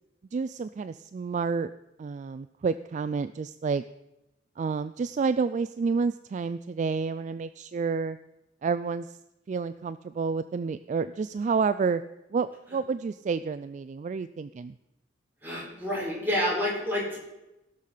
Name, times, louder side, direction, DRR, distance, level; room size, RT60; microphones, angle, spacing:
voice 1, 0.3-1.7 2.0-3.8 4.6-8.2 8.6-9.2 9.5-12.0 12.3-14.7, right 5 dB, 40° right, 13 dB, 0.3 m, -29 dB
voice 2, 15.4-17.2, left 1 dB, 10° right, -5 dB, 4.4 m, -28 dB
16.5 x 6.6 x 5.6 m, 0.95 s
head